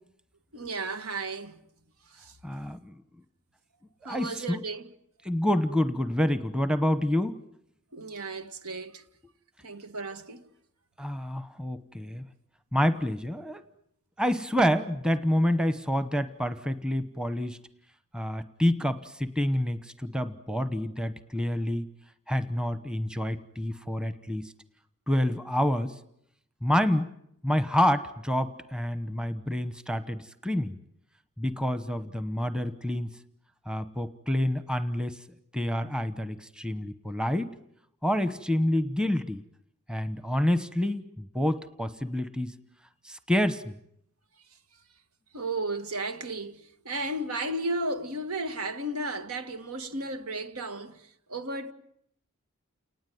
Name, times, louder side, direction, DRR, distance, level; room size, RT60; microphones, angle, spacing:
voice 1, 0.5-1.6 2.1-2.4 4.1-4.9 7.9-9.0 9.6-10.5 45.3-51.7, right 2 dB, 85° right, 1.8 m, -34 dB
voice 2, 2.4-2.9 4.1-4.6 5.2-7.4 11.0-12.3 12.7-13.6 14.2-17.6 18.1-21.8 22.3-24.5 25.1-25.9 26.6-27.1 27.4-30.8 31.4-33.1 33.7-35.2 35.5-37.5 38.0-39.4 39.9-42.6 43.0-43.7, left 1 dB, 5° right, 1.0 m, -28 dB
29.5 x 19.5 x 9.4 m
head